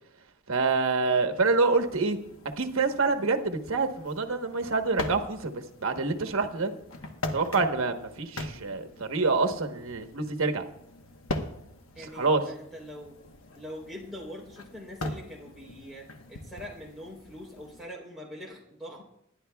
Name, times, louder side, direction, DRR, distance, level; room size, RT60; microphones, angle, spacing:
voice 1, 0.5-2.2 2.6-5.5 5.8-6.7 7.3-10.6 12.0-12.4, right 3 dB, 70° right, 5 dB, 1.1 m, -26 dB
sound 1, 1.3-17.8, left 2 dB, 75° left, 1.1 m, -41 dB
voice 2, 12.0-13.2 13.5-19.0, equal, ahead, -4 dB, 3.4 m, -43 dB
20.0 x 11.0 x 2.3 m, 0.75 s
head